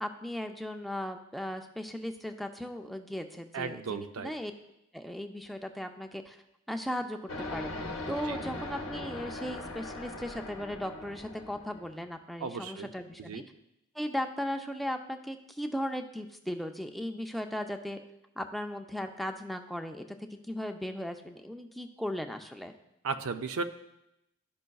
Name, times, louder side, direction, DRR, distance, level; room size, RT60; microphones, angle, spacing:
voice 1, 0.0-4.5 4.9-6.4 6.7-7.7 8.1-13.4 14.0-18.0 18.4-20.0 20.5-22.7, equal, ahead, 5 dB, 0.3 m, -37 dB
voice 2, 3.5-4.3 8.3-8.4 12.4-12.9 13.2-13.4 23.0-23.6, right 5 dB, 90° right, 8 dB, 0.5 m, -35 dB
sound 1, 7.3-12.0, left 2 dB, 70° left, 0.8 m, -40 dB
12.5 x 5.4 x 2.3 m, 0.87 s
head